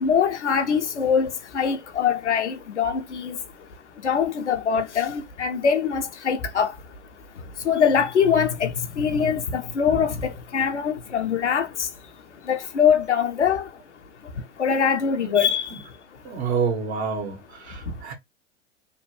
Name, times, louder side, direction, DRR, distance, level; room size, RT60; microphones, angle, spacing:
voice 1, 0.0-3.4 4.0-6.7 7.6-11.9 12.5-13.7 14.6-15.7, left 7 dB, 90° left, 0.6 m, -23 dB
voice 2, 16.2-18.1, right 6 dB, 70° right, 1.3 m, -28 dB
3.0 x 2.2 x 3.1 m
figure-of-eight pair, 90°, 34 cm